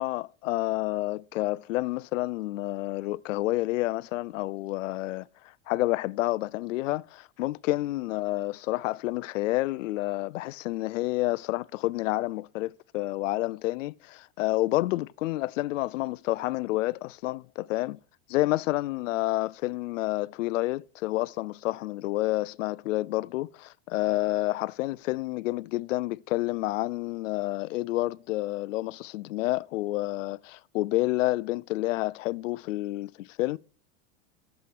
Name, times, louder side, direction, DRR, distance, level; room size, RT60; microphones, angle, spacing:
voice 1, 0.0-18.0 18.3-33.6, left 18 dB, 85° left, 0.6 m, -29 dB
11.5 x 7.5 x 4.6 m
supercardioid pair, 170°, 37 cm